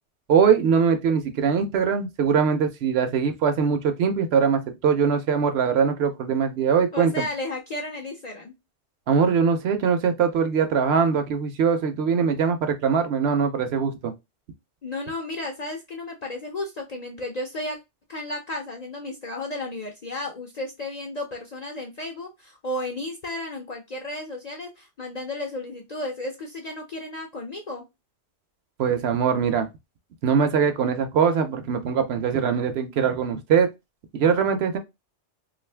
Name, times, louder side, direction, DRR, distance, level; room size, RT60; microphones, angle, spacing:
voice 1, 0.3-7.3 9.1-14.1 28.8-29.7 30.2-33.7 34.1-34.8, right 6 dB, 70° right, 0.8 m, -22 dB
voice 2, 6.9-8.5 14.8-17.8 18.1-27.8, left 2 dB, 50° left, 0.5 m, -33 dB
2.5 x 2.4 x 3.2 m
omnidirectional pair, 1.2 m